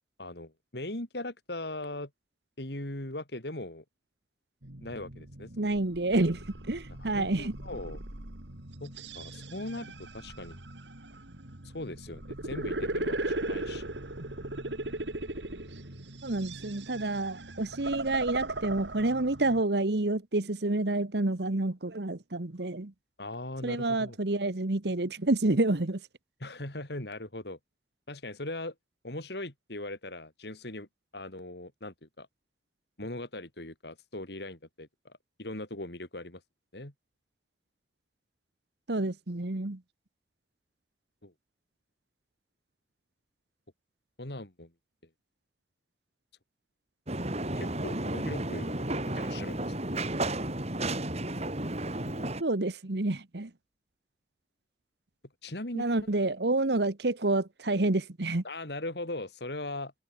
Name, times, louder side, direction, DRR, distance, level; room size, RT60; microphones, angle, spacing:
voice 1, 0.2-2.1 2.6-3.8 4.8-5.5 7.0-8.0 8.8-10.6 11.6-13.9 23.2-24.2 26.4-27.6 28.1-28.7 29.0-30.9 31.1-32.3 33.0-35.1 35.4-36.4 36.7-36.9 41.2-41.3 44.2-44.7 47.6-48.8 49.1-49.6 55.4-55.8 58.4-59.9, left 2 dB, 65° left, 3.3 m, -39 dB
sound 1, 4.6-19.6, right 2 dB, 85° right, 3.1 m, -38 dB
voice 2, 5.6-7.6 14.2-14.3 16.2-22.9 23.6-26.0 38.9-39.8 52.4-53.5 55.7-58.4, right 2 dB, 65° right, 1.3 m, -29 dB
sound 2, 47.1-52.4, right 1 dB, 40° right, 4.4 m, -32 dB
head